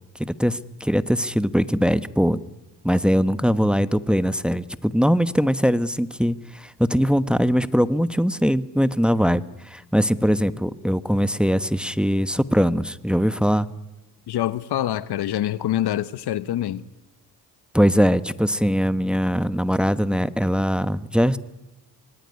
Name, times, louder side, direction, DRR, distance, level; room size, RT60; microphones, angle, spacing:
voice 1, 0.2-2.4 2.8-13.7 17.7-21.4, equal, ahead, 1.2 m, -21 dB
voice 2, 14.3-16.8, left 12 dB, 65° left, 1.1 m, -25 dB
25.0 x 21.0 x 9.8 m
hypercardioid pair, 55°, 43 cm